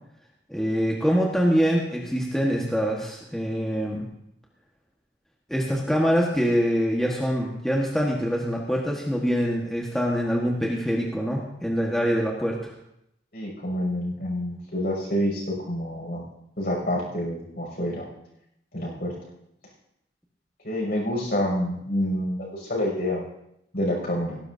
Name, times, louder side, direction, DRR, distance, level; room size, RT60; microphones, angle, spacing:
voice 1, 0.5-4.0 5.5-12.7, equal, ahead, -2 dB, 1.4 m, -24 dB
voice 2, 13.3-16.2 16.6-18.0 18.7-19.1 20.6-23.2 23.7-24.4, equal, 55° left, -2 dB, 6.6 m, -27 dB
18.0 x 15.5 x 2.7 m, 0.80 s
head